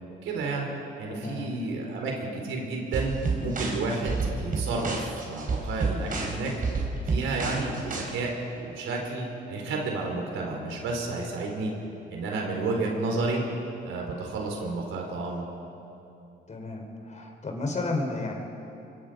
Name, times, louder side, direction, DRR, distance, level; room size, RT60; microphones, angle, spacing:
voice 1, 0.2-0.7 1.0-6.5 7.1-11.7 12.1-13.4 13.8-15.4, right 3 dB, 90° right, 1 dB, 4.5 m, -31 dB
voice 2, 1.1-1.5 16.5-18.3, left 2 dB, 35° left, 3 dB, 4.2 m, -32 dB
sound 1, 2.9-8.0, right 4 dB, 45° right, 4.6 m, -30 dB
25.5 x 22.5 x 5.3 m, 2.8 s
cardioid pair, 90°, 20 cm